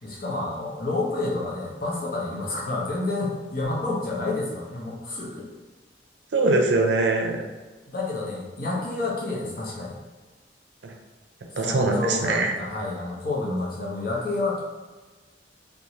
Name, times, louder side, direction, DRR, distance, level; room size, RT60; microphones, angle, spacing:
voice 1, 0.0-5.5 7.9-10.0 11.6-14.6, left 2 dB, 55° left, -4 dB, 0.7 m, -29 dB
voice 2, 6.3-7.4 10.8-10.9 11.6-12.5, right 2 dB, 75° right, 2 dB, 0.5 m, -22 dB
2.6 x 2.2 x 2.9 m, 1.3 s
head